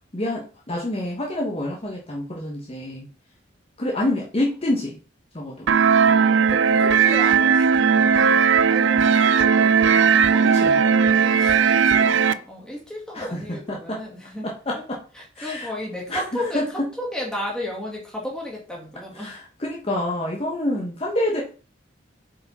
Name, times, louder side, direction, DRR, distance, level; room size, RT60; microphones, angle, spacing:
voice 1, 0.1-3.1 3.8-5.0 5.3-5.7 10.4-10.8 13.1-14.0 14.4-15.0 15.4-15.7 16.1-16.9 19.1-21.4, left 1 dB, 30° left, -2 dB, 1.2 m, -27 dB
sound 1, 5.7-12.3, right 6 dB, 65° right, 0.4 m, -17 dB
voice 2, 6.0-14.5 15.1-19.3, left 1 dB, 5° left, -3 dB, 2.3 m, -34 dB
7.4 x 4.9 x 4.2 m, 0.38 s
head